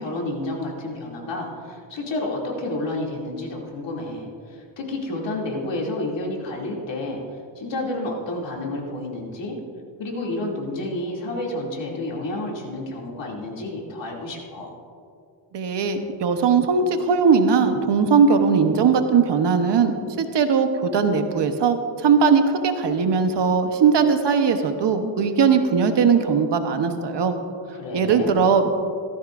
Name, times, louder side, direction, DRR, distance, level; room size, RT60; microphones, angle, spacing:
voice 1, 0.0-7.2 7.6-9.6 10.0-14.7 27.7-28.5, left 2 dB, 60° left, -2 dB, 2.8 m, -30 dB
voice 2, 15.5-27.3 27.9-28.7, right 5 dB, 55° right, 6 dB, 1.1 m, -19 dB
17.0 x 14.0 x 2.6 m, 2.4 s
cardioid pair, 105°, 50 cm